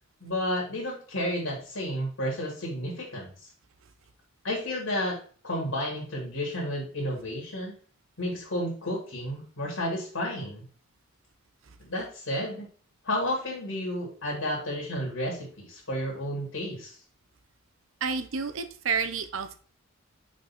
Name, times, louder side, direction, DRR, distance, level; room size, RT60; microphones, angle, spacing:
voice 1, 0.2-3.3 4.4-5.2 5.4-7.7 8.2-10.6 11.8-12.7 13.0-17.0, left 1 dB, 65° left, -3 dB, 2.4 m, -31 dB
voice 2, 18.0-19.6, right 5 dB, 65° right, 11 dB, 0.7 m, -30 dB
5.9 x 4.1 x 4.2 m, 0.44 s
head